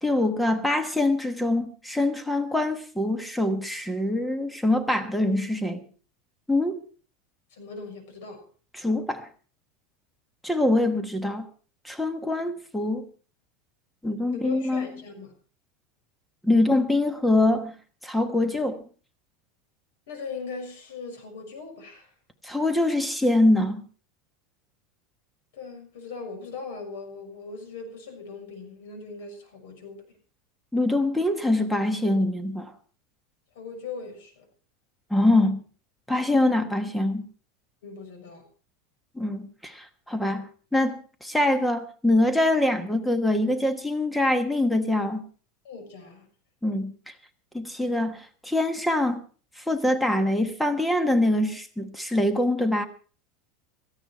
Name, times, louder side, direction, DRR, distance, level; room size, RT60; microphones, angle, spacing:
voice 1, 0.0-5.8 6.5-6.8 8.8-9.3 10.4-11.4 11.8-13.1 14.0-14.9 16.4-17.7 18.0-18.8 22.4-23.8 30.7-32.7 35.1-35.6 36.1-37.2 39.2-45.2 46.6-46.9 47.5-49.2 49.6-52.9, left 1 dB, 5° left, 1.3 m, -24 dB
voice 2, 7.5-8.5 14.3-15.3 20.1-22.1 25.5-30.0 33.5-34.4 37.8-38.4 45.6-46.3, left 4 dB, 80° left, 6.2 m, -39 dB
17.0 x 14.5 x 4.6 m
supercardioid pair, 165°, 0 cm